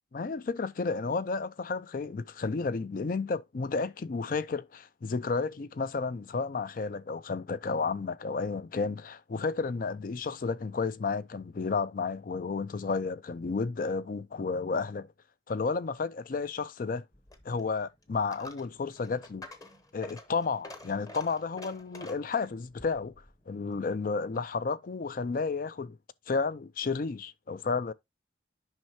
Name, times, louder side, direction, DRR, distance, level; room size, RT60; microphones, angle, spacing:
voice 1, 0.1-15.1 15.5-17.0 17.4-19.5 19.9-23.1 23.5-26.0 26.3-27.9, left 4 dB, 50° left, 0.4 m, -32 dB
Coin (dropping), 17.1-24.6, left 1 dB, 20° left, 0.9 m, -49 dB
9.1 x 5.5 x 2.7 m
head